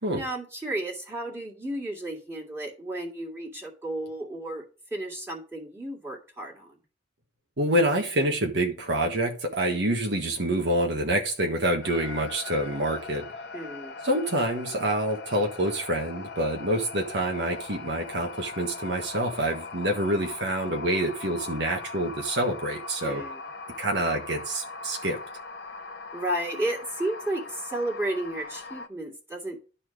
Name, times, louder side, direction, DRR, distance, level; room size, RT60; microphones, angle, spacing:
voice 1, 0.1-4.6 4.9-6.8 13.5-14.0 23.0-23.4 26.1-29.6, right 1 dB, 15° right, 2.1 m, -33 dB
voice 2, 7.6-13.2 14.0-23.2 23.8-25.2, right 1 dB, 75° right, 1.4 m, -27 dB
sound 1, 11.8-28.9, left 3 dB, 60° left, 0.7 m, -40 dB
11.0 x 4.4 x 4.9 m
head